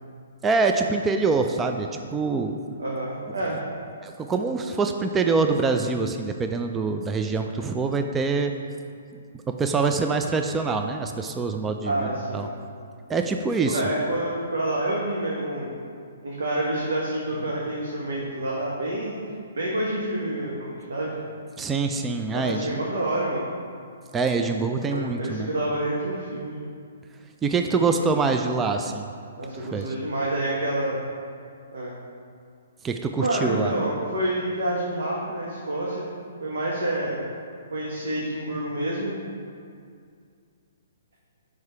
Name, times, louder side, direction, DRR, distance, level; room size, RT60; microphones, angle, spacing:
voice 1, 0.4-2.6 4.0-8.5 9.5-12.5 13.1-13.8 21.6-22.7 24.1-25.5 27.4-29.1 29.6-29.9 32.8-33.7, right 4 dB, 15° right, 5 dB, 0.3 m, -25 dB
voice 2, 2.8-3.6 11.8-12.5 13.6-15.7 16.2-19.1 19.5-21.2 22.3-23.4 24.9-26.6 29.4-31.0 31.7-31.9 33.2-36.1 36.4-37.2 37.7-39.2, right 1 dB, 85° right, -4 dB, 1.1 m, -28 dB
4.8 x 4.7 x 5.5 m, 2.2 s
hypercardioid pair, 140°, 0 cm